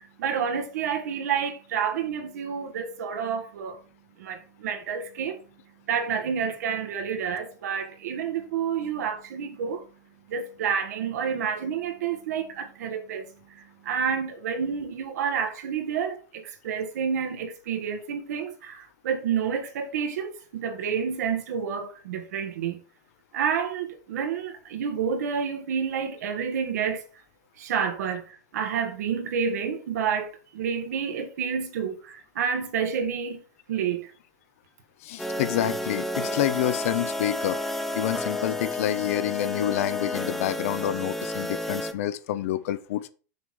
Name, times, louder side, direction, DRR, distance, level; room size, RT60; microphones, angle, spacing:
voice 1, 0.2-3.8 4.2-5.4 5.9-9.8 10.3-13.3 13.8-22.8 23.3-27.0 27.6-28.2 28.5-33.4 33.7-34.1, right 7 dB, 70° right, 1.7 m, -29 dB
voice 2, 35.0-37.6 37.9-43.1, left 12 dB, 55° left, 0.8 m, -28 dB
sound 1, 35.2-41.9, left 1 dB, ahead, 0.6 m, -31 dB
6.7 x 6.1 x 4.7 m
supercardioid pair, 170°, 9 cm